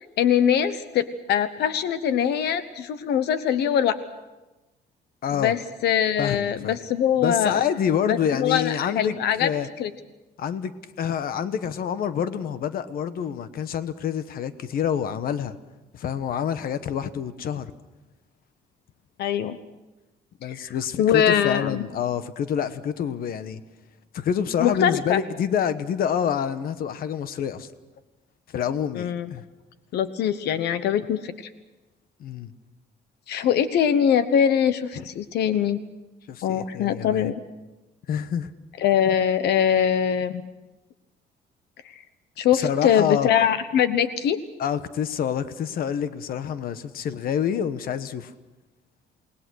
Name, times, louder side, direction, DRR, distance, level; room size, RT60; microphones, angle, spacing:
voice 1, 0.2-4.0 5.3-7.6 8.1-9.5 9.8-9.9 19.2-19.6 20.5-21.8 24.6-25.2 28.9-29.3 29.9-31.3 33.3-35.8 36.4-37.3 38.8-40.4 41.8-41.9 42.4-44.4, left 9 dB, 75° left, 12 dB, 1.1 m, -22 dB
voice 2, 5.2-5.5 6.2-6.8 7.2-9.1 9.4-9.7 10.4-10.7 11.0-15.5 15.9-17.7 20.4-23.6 24.1-27.7 28.5-29.4 32.2-32.5 35.0-35.1 36.3-37.3 38.1-38.5 42.5-43.3 44.6-48.3, left 8 dB, 60° left, 12 dB, 1.2 m, -27 dB
28.5 x 20.0 x 6.4 m, 1.1 s
cardioid pair, 145°, 17 cm